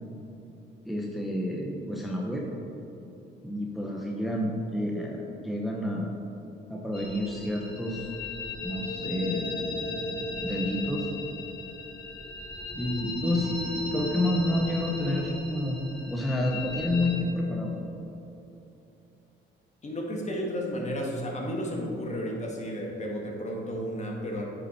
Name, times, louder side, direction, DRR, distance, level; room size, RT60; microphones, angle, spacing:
voice 1, 0.8-2.4 3.4-6.1 6.7-8.1 8.6-9.6 10.4-11.1 12.7-13.6 13.9-15.8 16.1-17.8, left 1 dB, ahead, -2 dB, 1.0 m, -29 dB
sound 1, 6.9-17.2, left 3 dB, 55° left, 1.9 m, -35 dB
voice 2, 19.8-24.4, equal, 35° left, -1 dB, 1.8 m, -32 dB
8.9 x 6.0 x 4.4 m, 2.9 s
cardioid pair, 90°, 20 cm